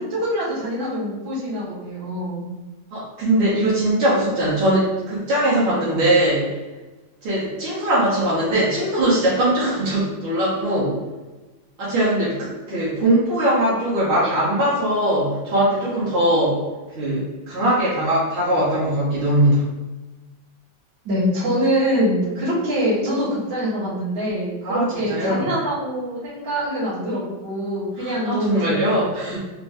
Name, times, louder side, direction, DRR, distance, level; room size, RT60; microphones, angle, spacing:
voice 1, 0.0-2.5 21.0-29.3, equal, 65° right, -9 dB, 2.2 m, -24 dB
voice 2, 2.9-6.5 7.2-11.0 11.8-16.6 16.9-19.6 24.6-25.4 28.0-29.4, right 1 dB, 80° right, -9 dB, 2.0 m, -21 dB
4.4 x 2.6 x 3.5 m, 1.2 s
omnidirectional pair, 2.2 m